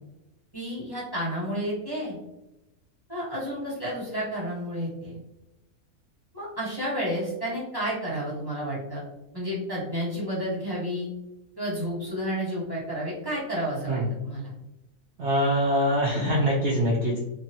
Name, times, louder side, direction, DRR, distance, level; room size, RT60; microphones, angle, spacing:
voice 1, 0.5-2.2 3.1-5.2 6.3-9.0 9.3-11.1 11.6-14.5, equal, 20° left, -8 dB, 0.8 m, -31 dB
voice 2, 15.2-17.2, equal, 60° right, -4 dB, 0.7 m, -24 dB
2.9 x 2.6 x 2.8 m, 0.95 s
omnidirectional pair, 1.7 m